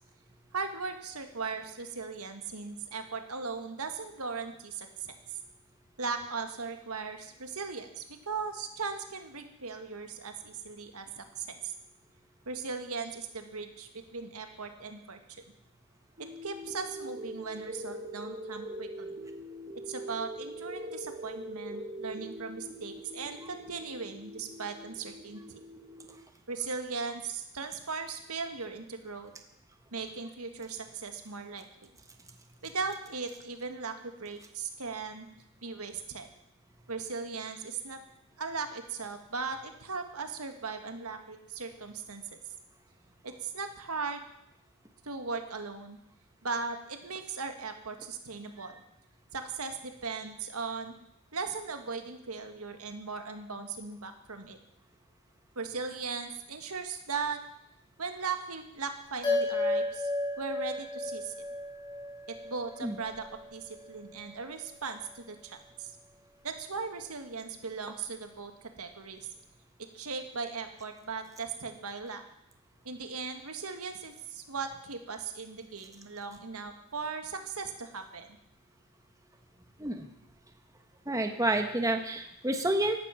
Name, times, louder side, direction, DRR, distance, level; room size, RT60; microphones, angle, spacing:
voice 1, 0.5-5.1 6.0-11.7 12.5-15.2 16.4-19.1 19.7-25.4 26.5-29.3 29.9-31.9 32.6-35.3 35.6-36.3 36.9-38.0 38.4-42.4 43.2-44.2 45.0-46.0 46.4-48.8 49.3-51.0 51.3-54.6 55.6-57.4 58.0-60.1 60.4-61.4 62.3-65.9 66.4-69.3 69.9-72.2 72.8-78.3, right 4 dB, 80° right, 6 dB, 1.9 m, -38 dB
sound 1, 16.2-26.2, right 1 dB, 35° right, 1.6 m, -43 dB
sound 2, 59.2-63.9, left 2 dB, 20° left, 6.1 m, -33 dB
voice 2, 81.1-83.0, right 1 dB, 15° right, 5 dB, 1.3 m, -29 dB
16.0 x 12.0 x 5.9 m, 0.81 s
head